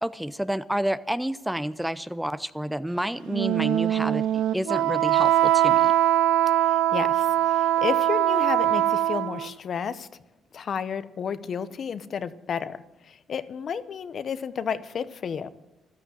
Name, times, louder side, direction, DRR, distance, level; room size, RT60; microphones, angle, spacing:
voice 1, 0.0-5.9, equal, 5° right, 14 dB, 0.5 m, -29 dB
Wind instrument woodwind instrument, 3.3-9.5, right 12 dB, 90° right, 0.4 m, -22 dB
voice 2, 6.6-10.1 10.5-15.5, left 7 dB, 55° left, 13 dB, 0.8 m, -32 dB
13.5 x 13.0 x 7.6 m, 0.95 s
cardioid pair, 90°, 0 cm